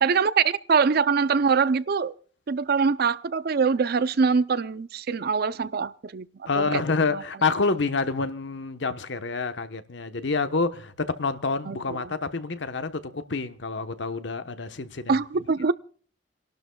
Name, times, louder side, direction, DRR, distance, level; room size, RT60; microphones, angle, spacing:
voice 1, 0.0-2.1 2.5-6.3 6.6-6.8 11.7-11.8 15.1-15.7, right 5 dB, 55° right, 0.5 m, -23 dB
voice 2, 6.5-15.2, left 4 dB, 65° left, 1.1 m, -28 dB
29.0 x 12.0 x 2.3 m
head